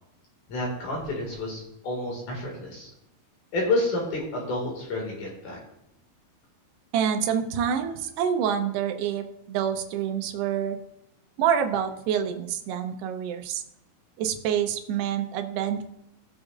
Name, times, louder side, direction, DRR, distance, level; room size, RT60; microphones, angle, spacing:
voice 1, 0.5-2.9 3.5-5.6, left 2 dB, 55° left, -2 dB, 3.1 m, -29 dB
voice 2, 6.9-10.8 11.4-13.6 14.2-15.8, right 8 dB, 90° right, 6 dB, 2.9 m, -27 dB
19.0 x 6.4 x 2.4 m, 0.84 s
omnidirectional pair, 4.6 m